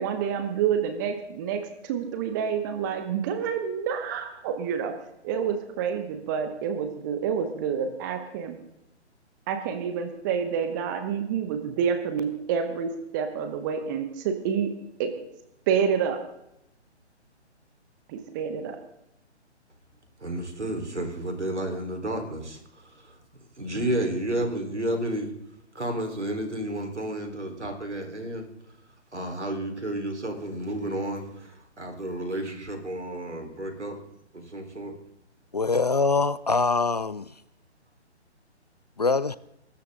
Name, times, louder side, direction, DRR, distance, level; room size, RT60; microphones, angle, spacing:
voice 1, 0.0-4.9 5.2-8.6 9.5-14.7 15.0-15.1 15.7-16.2 18.1-18.8, right 7 dB, 15° right, 1.1 m, -28 dB
voice 2, 20.2-23.2 23.6-25.3 25.7-28.5 29.1-34.0 34.3-34.9, right 1 dB, 75° right, 4.3 m, -31 dB
voice 3, 35.5-37.4 39.0-39.4, left 3 dB, 35° left, 0.4 m, -24 dB
22.0 x 13.0 x 3.8 m
figure-of-eight pair, 135°, 35 cm